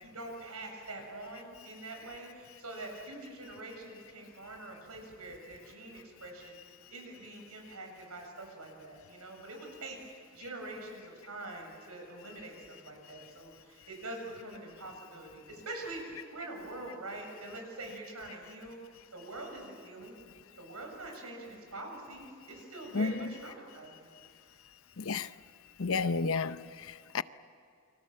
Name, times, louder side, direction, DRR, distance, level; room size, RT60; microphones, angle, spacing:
voice 1, 0.0-6.6 6.9-10.0 10.3-18.8 19.1-20.2 20.6-24.1, right 2 dB, 85° right, 7.4 m, -44 dB
voice 2, 22.9-23.3 24.1-24.3 24.7-25.4 25.8-27.2, left 4 dB, 65° left, 0.7 m, -33 dB
29.5 x 24.5 x 7.5 m
head